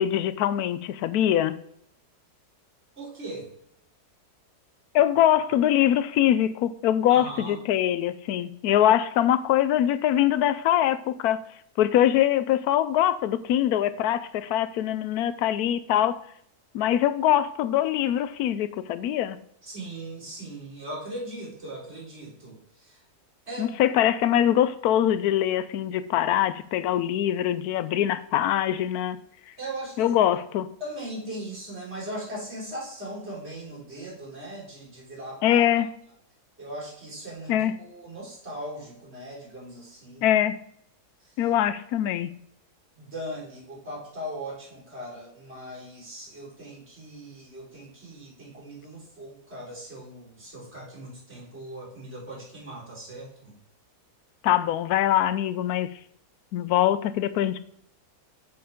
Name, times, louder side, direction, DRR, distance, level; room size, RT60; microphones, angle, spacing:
voice 1, 0.0-1.6 4.9-11.4 11.8-16.2 16.7-19.4 23.6-29.2 30.0-30.7 35.4-35.9 37.5-37.7 40.2-40.6 41.4-42.3 54.4-55.9 56.5-57.6, left 11 dB, 75° left, 14 dB, 1.0 m, -23 dB
voice 2, 3.0-3.5 7.1-7.6 19.6-22.6 23.5-23.8 29.6-30.2 30.8-35.6 36.6-40.3 43.0-53.5, right 1 dB, 40° right, -6 dB, 4.4 m, -39 dB
8.8 x 6.9 x 3.6 m, 0.70 s
omnidirectional pair, 1.7 m